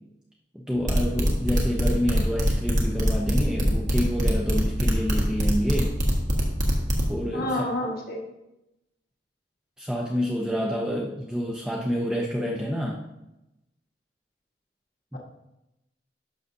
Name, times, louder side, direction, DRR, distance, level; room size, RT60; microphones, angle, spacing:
voice 1, 0.5-5.9 7.1-7.7 9.8-13.0 15.1-15.2, equal, 5° right, -2 dB, 0.6 m, -28 dB
sound 1, 0.9-7.0, equal, 45° right, 1.5 m, -22 dB
voice 2, 7.3-8.3, left 1 dB, 55° left, 0 dB, 1.4 m, -29 dB
11.0 x 6.6 x 2.6 m, 0.92 s
head